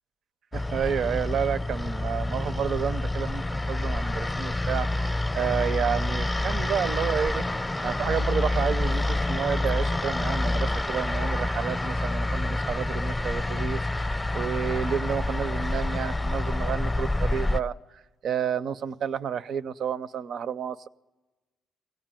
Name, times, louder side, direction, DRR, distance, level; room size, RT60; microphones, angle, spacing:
sound 1, 0.5-17.6, left 2 dB, 15° left, 0.6 m, -27 dB
voice 1, 0.5-7.6 7.8-13.8 14.3-20.9, right 8 dB, 70° right, 13 dB, 0.6 m, -30 dB
24.0 x 17.5 x 9.0 m, 1.2 s
cardioid pair, 110°, 0 cm